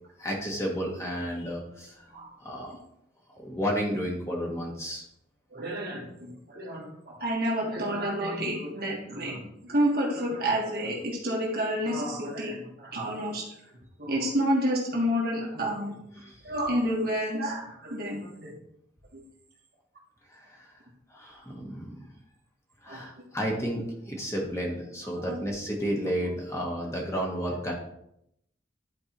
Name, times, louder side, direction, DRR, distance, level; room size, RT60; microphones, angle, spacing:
voice 1, 0.2-1.9 2.4-2.8 3.3-5.0 20.3-20.7 21.1-21.9 22.8-27.7, equal, 15° left, -1 dB, 1.5 m, -32 dB
voice 2, 5.5-13.5 14.0-16.0 16.4-18.5 19.1-19.2 22.9-23.0 23.5-23.7 25.1-25.4, equal, 55° right, -2 dB, 1.6 m, -29 dB
11.0 x 4.5 x 3.0 m, 0.77 s
head